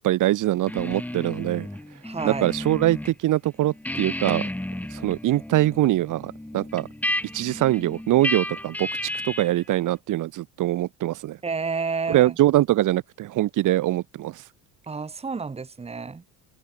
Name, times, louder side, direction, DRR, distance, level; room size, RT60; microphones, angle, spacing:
voice 1, 0.0-1.7 2.2-4.4 4.9-6.9 7.3-8.9 9.2-11.4 12.1-14.4, right 15 dB, 50° right, 2.0 m, -23 dB
sound 1, 0.7-3.1 3.5-9.6, left 1 dB, 5° left, 4.4 m, -32 dB
voice 2, 2.0-2.5 11.4-12.3 14.9-16.2, right 4 dB, 15° right, 2.9 m, -30 dB
cardioid pair, 155°, 39 cm